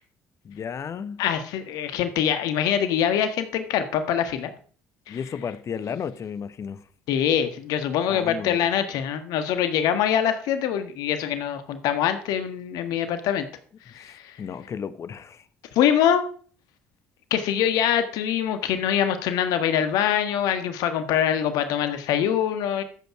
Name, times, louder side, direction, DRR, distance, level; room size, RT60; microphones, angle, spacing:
voice 1, 0.4-1.2 5.1-6.8 8.1-8.9 14.0-15.4, left 7 dB, 45° left, 1.2 m, -34 dB
voice 2, 1.2-4.5 5.1-5.2 7.1-13.5 13.9-14.3 15.7-16.2 17.3-22.8, left 9 dB, 65° left, 1.6 m, -24 dB
13.5 x 8.2 x 4.9 m
hypercardioid pair, 55°, 7 cm